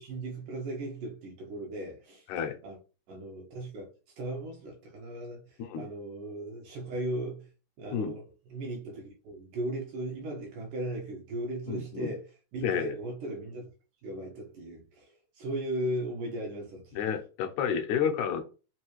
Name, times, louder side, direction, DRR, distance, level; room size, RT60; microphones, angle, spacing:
voice 1, 0.0-2.3 2.6-2.8 3.1-3.9 4.2-7.5 7.8-8.2 8.5-12.2 12.5-13.7 14.0-17.1, right 1 dB, 75° right, 2.9 m, -37 dB
voice 2, 11.7-12.1 12.6-12.9 17.0-18.4, left 7 dB, 75° left, 2.0 m, -30 dB
6.1 x 2.7 x 3.0 m
omnidirectional pair, 3.7 m